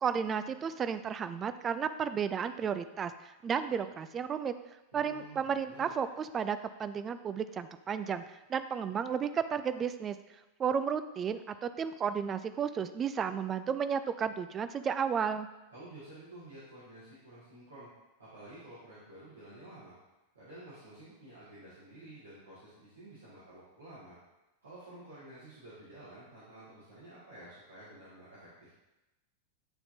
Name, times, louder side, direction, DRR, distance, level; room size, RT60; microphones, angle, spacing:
voice 1, 0.0-4.5 4.9-10.2 10.6-15.5, right 7 dB, 25° right, 11 dB, 0.3 m, -33 dB
voice 2, 4.9-6.0 15.7-17.9 18.2-20.0 20.3-24.2 24.6-28.7, right 1 dB, 75° right, -11 dB, 1.8 m, -51 dB
8.8 x 4.2 x 2.7 m, 1.0 s
figure-of-eight pair, 90°, 0 cm